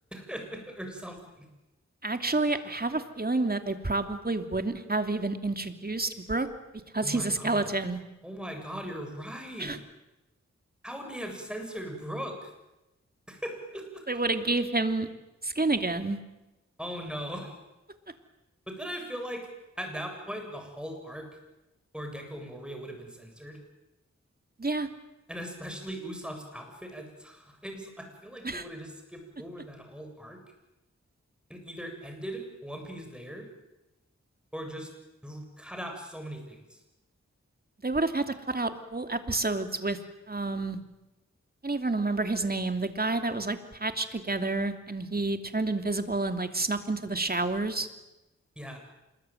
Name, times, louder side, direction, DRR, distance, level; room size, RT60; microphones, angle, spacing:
voice 1, 0.1-1.5 7.0-7.7 8.2-9.8 10.8-12.5 13.3-14.0 16.8-17.6 18.7-19.5 19.8-21.3 21.9-23.6 25.3-30.4 31.5-33.5 34.5-34.9 35.2-36.8 48.6-48.8, equal, 5° right, 4 dB, 7.9 m, -39 dB
voice 2, 2.0-6.5 6.9-8.0 9.6-9.8 14.1-15.1 15.4-16.2 24.6-24.9 28.4-28.6 37.8-40.0 40.3-40.8 41.6-47.9, right 2 dB, 30° right, 8 dB, 2.8 m, -29 dB
26.5 x 22.0 x 9.3 m, 0.99 s
cardioid pair, 55°, 29 cm